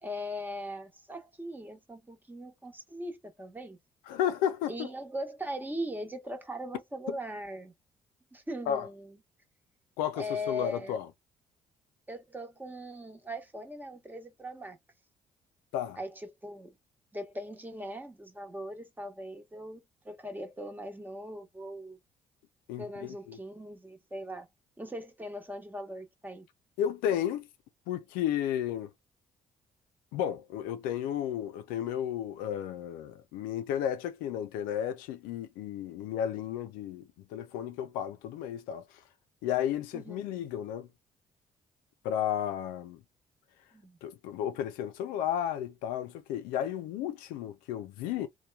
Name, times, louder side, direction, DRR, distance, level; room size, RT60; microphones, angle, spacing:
voice 1, 0.0-3.8 4.7-7.7 8.3-9.2 10.1-11.0 12.1-14.8 16.0-16.7 17.1-22.0 22.8-24.5 24.8-26.4 39.9-40.2 43.7-44.0, equal, 15° right, 1.0 m, -40 dB
voice 2, 4.1-4.9 7.1-7.2 8.7-8.9 10.0-11.1 15.7-16.0 22.7-23.4 26.8-27.5 27.9-28.9 30.1-38.9 39.4-40.9 42.0-43.0 44.0-48.3, left 10 dB, 90° left, 0.4 m, -33 dB
2.8 x 2.2 x 2.3 m
supercardioid pair, 65°, 14 cm